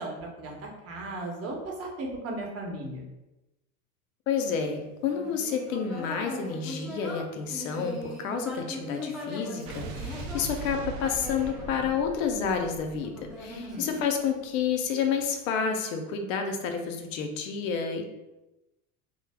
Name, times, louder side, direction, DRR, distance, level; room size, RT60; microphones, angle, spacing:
voice 1, 0.0-3.0 13.5-14.0, right 2 dB, 35° right, 0 dB, 0.8 m, -36 dB
voice 2, 4.3-18.1, left 6 dB, 70° left, 4 dB, 0.6 m, -30 dB
Human voice, 5.1-12.4 13.0-14.5, left 2 dB, ahead, 0.5 m, -40 dB
Explosion, 9.7-14.0, right 4 dB, 70° right, 0.5 m, -40 dB
2.6 x 2.0 x 3.2 m, 0.99 s
hypercardioid pair, 80°, 41 cm